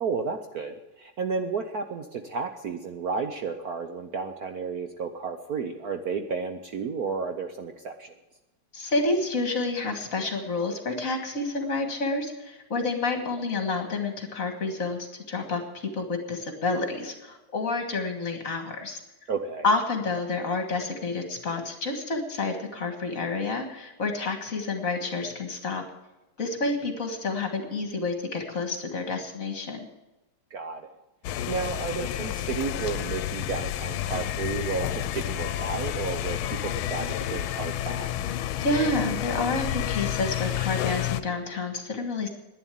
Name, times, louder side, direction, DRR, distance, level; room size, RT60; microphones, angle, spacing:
voice 1, 0.0-8.1 19.3-19.6 30.5-30.9 31.5-36.4 36.6-38.1, right 5 dB, 60° right, 6 dB, 1.1 m, -32 dB
voice 2, 8.7-19.0 19.6-25.8 26.4-29.9 38.6-42.3, left 3 dB, 45° left, 5 dB, 1.9 m, -29 dB
sound 1, 31.2-41.2, left 12 dB, 80° left, 1.5 m, -30 dB
11.0 x 10.0 x 9.2 m, 1.0 s
omnidirectional pair, 2.3 m